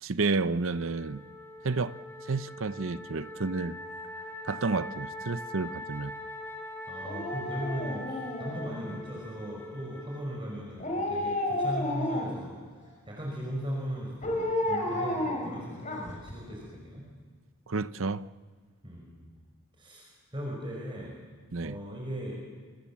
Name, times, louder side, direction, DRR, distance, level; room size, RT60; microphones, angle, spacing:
voice 1, 0.0-1.2 1.6-2.0 2.2-3.8 4.4-6.1 17.7-18.3 21.5-21.8, right 3 dB, 65° right, 0.7 m, -30 dB
Wind instrument woodwind instrument, 0.6-11.0, left 1 dB, 10° left, 3.3 m, -43 dB
voice 2, 6.9-17.0 18.8-19.2 19.8-21.1 21.6-22.4, equal, 25° right, 5.4 m, -38 dB
Dog, 7.0-9.1 10.8-12.5 14.2-16.3 16.7-16.8, left 1 dB, 35° left, 5.2 m, -32 dB
28.5 x 26.0 x 7.3 m
head